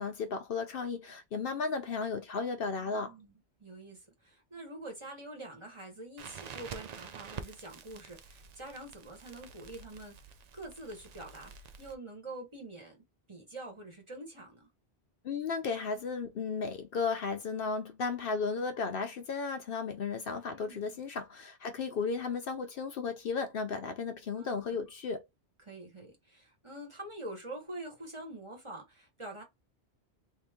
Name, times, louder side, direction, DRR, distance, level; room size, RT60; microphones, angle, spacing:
voice 1, 0.0-3.1 15.2-25.3, left 5 dB, 65° left, 0.7 m, -34 dB
voice 2, 2.8-10.2 10.5-14.7 20.5-21.0 24.3-24.9 25.6-29.4, right 2 dB, 30° right, 1.1 m, -46 dB
Crackle, 6.2-12.0, right 6 dB, 55° right, 0.5 m, -48 dB
3.1 x 2.7 x 3.5 m
omnidirectional pair, 1.1 m